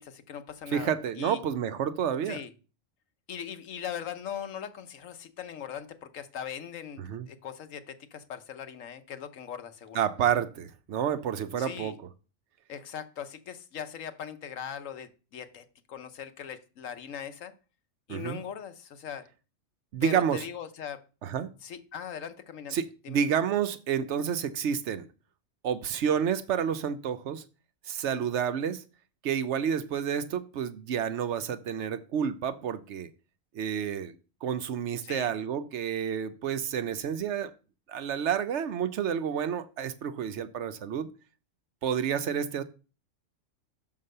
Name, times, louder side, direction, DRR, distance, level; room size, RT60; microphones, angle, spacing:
voice 1, 0.0-1.4 2.2-2.5 3.3-10.0 11.6-11.9 12.7-17.5 18.1-19.3 20.0-21.0 21.6-22.8 23.0-23.2 26.0-26.2 28.2-28.3 35.0-35.3, left 8 dB, 85° left, 1.3 m, -40 dB
voice 2, 0.7-2.4 7.0-7.3 9.9-11.9 18.1-18.4 19.9-20.4 21.2-21.5 22.7-25.1 25.6-27.4 27.9-28.8 29.2-33.1 33.5-34.2 34.4-37.5 37.9-41.1 41.8-42.6, right 8 dB, 65° right, 0.9 m, -29 dB
5.9 x 5.6 x 6.5 m
omnidirectional pair, 1.3 m